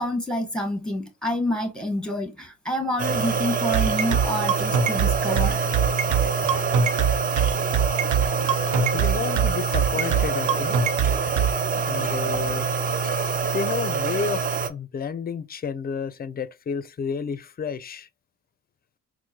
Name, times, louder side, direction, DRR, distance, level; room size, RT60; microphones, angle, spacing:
voice 1, 0.0-5.6, left 1 dB, 5° left, 1.2 m, -28 dB
sound 1, 3.0-14.7, right 5 dB, 30° right, 0.6 m, -25 dB
sound 2, 3.7-11.5, right 7 dB, 75° right, 0.8 m, -21 dB
voice 2, 8.7-10.8 11.9-12.6 13.5-18.1, left 6 dB, 30° left, 0.4 m, -31 dB
4.4 x 2.1 x 2.8 m
cardioid pair, 90°, 30 cm